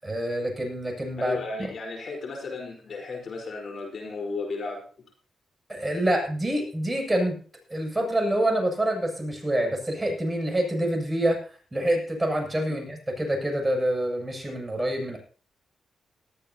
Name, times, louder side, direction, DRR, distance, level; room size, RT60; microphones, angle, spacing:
voice 1, 0.0-1.7 5.7-7.4 7.7-11.4 11.7-15.2, right 1 dB, 20° right, 2 dB, 7.6 m, -26 dB
voice 2, 1.2-4.9, left 3 dB, 60° left, 2 dB, 4.5 m, -34 dB
19.5 x 14.5 x 2.9 m, 0.40 s
supercardioid pair, 55°, 0 cm